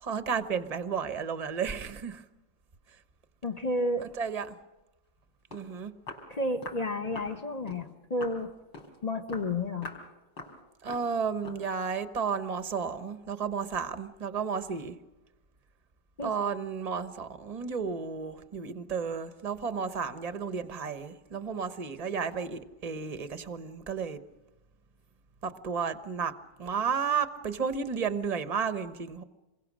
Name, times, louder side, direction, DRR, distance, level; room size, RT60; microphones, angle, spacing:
voice 1, 0.0-2.2 4.0-4.6 5.5-5.9 10.8-15.0 16.2-24.2 25.4-26.3 26.6-29.2, right 6 dB, 30° right, 0.8 m, -32 dB
voice 2, 3.4-4.1 6.3-8.5 9.0-9.9 16.2-16.3, left 1 dB, 30° left, 0.7 m, -31 dB
Walk footsteps, 5.2-5.3 5.5-5.7 6.1-6.3 6.6-6.8 7.2-7.4 7.7-7.9 8.2-8.4 8.7-9.0 9.3-9.5 9.8-10.1 10.4-10.6 10.9-11.1 11.4-11.7, left 2 dB, 70° left, 4.8 m, -43 dB
28.0 x 22.5 x 6.3 m
omnidirectional pair, 2.1 m